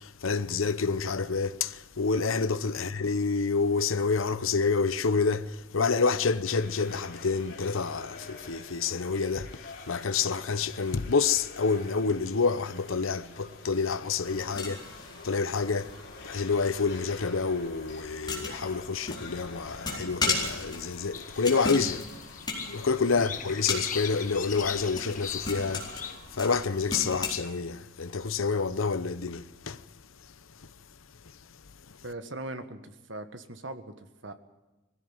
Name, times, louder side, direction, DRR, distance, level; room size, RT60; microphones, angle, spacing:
voice 1, 0.0-22.3 22.7-25.9 26.3-29.8, left 4 dB, 80° left, 0.8 m, -28 dB
sound 1, 6.4-26.2, left 3 dB, 55° left, 4.4 m, -48 dB
sound 2, 14.2-27.3, left 3 dB, 20° left, 4.3 m, -37 dB
sound 3, 21.1-26.2, left 8 dB, 40° left, 1.2 m, -40 dB
voice 2, 32.0-34.3, right 2 dB, 65° right, 1.6 m, -40 dB
21.0 x 16.0 x 8.9 m
head